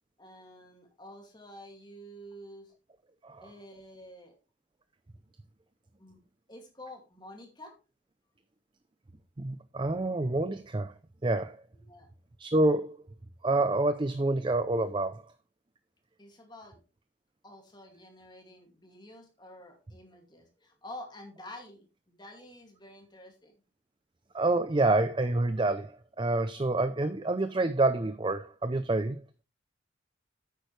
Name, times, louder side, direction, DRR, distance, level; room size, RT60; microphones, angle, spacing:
voice 1, 0.2-2.7 3.4-4.4 6.0-6.2 6.5-7.7 11.7-12.1 16.2-16.8 17.4-23.5, left 1 dB, 20° left, 2.4 m, -49 dB
voice 2, 9.4-10.9 11.2-11.6 12.4-13.0 13.4-15.2 24.3-29.2, right 2 dB, 25° right, 0.5 m, -27 dB
9.1 x 9.0 x 3.3 m
head